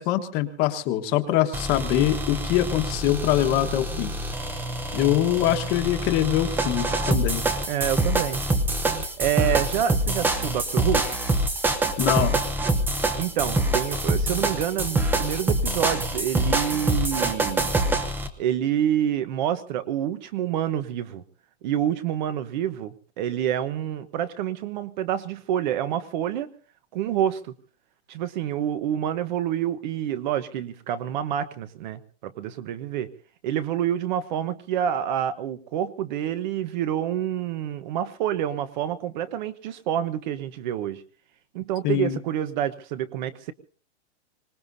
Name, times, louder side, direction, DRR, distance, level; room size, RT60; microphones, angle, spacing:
voice 1, 0.0-4.1 4.9-7.5 12.0-12.4 41.8-42.2, left 12 dB, 30° left, 7 dB, 1.4 m, -23 dB
sound 1, 1.5-18.3, right 2 dB, 5° right, 0.8 m, -25 dB
voice 2, 7.7-8.4 9.2-11.1 13.2-17.7 18.4-21.2 21.6-26.5 26.9-27.4 28.1-33.1 33.4-41.0 41.5-43.5, right 10 dB, 40° right, 12 dB, 1.1 m, -27 dB
25.5 x 19.0 x 2.7 m, 0.43 s
supercardioid pair, 165°, 34 cm